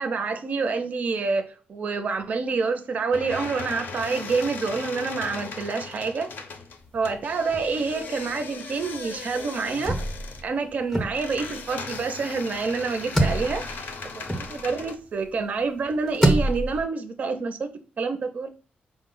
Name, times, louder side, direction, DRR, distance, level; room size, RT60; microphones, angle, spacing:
voice 1, 0.0-6.3 6.9-10.0 10.4-13.9 14.2-17.7 18.0-18.5, right 4 dB, 45° right, 0.4 m, -27 dB
sound 1, 3.1-15.0, left 4 dB, 65° left, 0.5 m, -38 dB
sound 2, 6.8-8.1 8.3-8.4 8.7-15.1 15.6-16.8, right 1 dB, 10° left, 0.5 m, -27 dB
4.8 x 2.0 x 3.7 m
wide cardioid pair, 170°, 3 cm